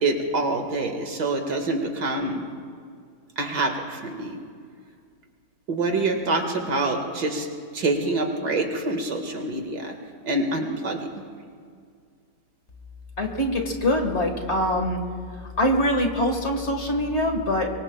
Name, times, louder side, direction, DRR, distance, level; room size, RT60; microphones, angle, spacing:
voice 1, 0.0-2.5 3.4-4.4 5.7-7.5 7.7-9.9 10.2-11.1, right 2 dB, 70° right, 3 dB, 2.3 m, -26 dB
voice 2, 13.2-15.0 15.6-17.8, left 1 dB, 40° left, 3 dB, 1.8 m, -23 dB
24.0 x 23.5 x 2.3 m, 2.2 s
omnidirectional pair, 1.8 m